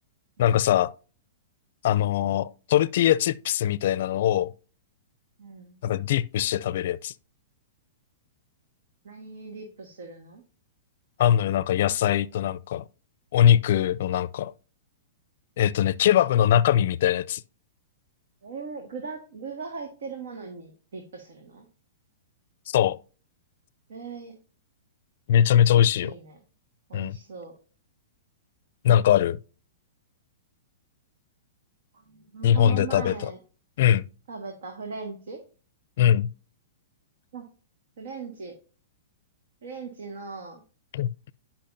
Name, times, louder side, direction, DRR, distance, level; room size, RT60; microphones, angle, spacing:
voice 1, 0.4-0.9 1.8-4.5 5.8-7.1 11.2-12.8 13.3-14.5 15.6-17.4 22.7-23.0 25.3-26.1 26.9-27.2 28.8-29.4 32.4-33.3 33.8-34.1 36.0-36.3 40.9-41.3, left 10 dB, 60° left, 0.4 m, -21 dB
voice 2, 5.4-5.8 9.0-10.4 18.4-21.7 23.9-24.4 26.0-26.4 26.9-27.5 31.9-33.4 34.3-35.4 37.3-37.5 38.0-38.5 39.6-40.6, right 5 dB, 80° right, 1.7 m, -39 dB
10.5 x 5.7 x 2.7 m
hypercardioid pair, 155°, 0 cm